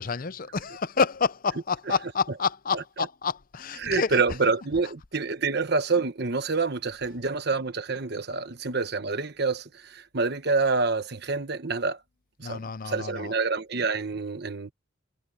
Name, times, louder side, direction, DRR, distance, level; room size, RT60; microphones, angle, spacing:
voice 1, 0.0-4.2 12.4-13.3, left 5 dB, 45° left, 0.6 m, -28 dB
voice 2, 3.8-12.0 12.4-14.7, right 4 dB, 50° right, 1.1 m, -27 dB
head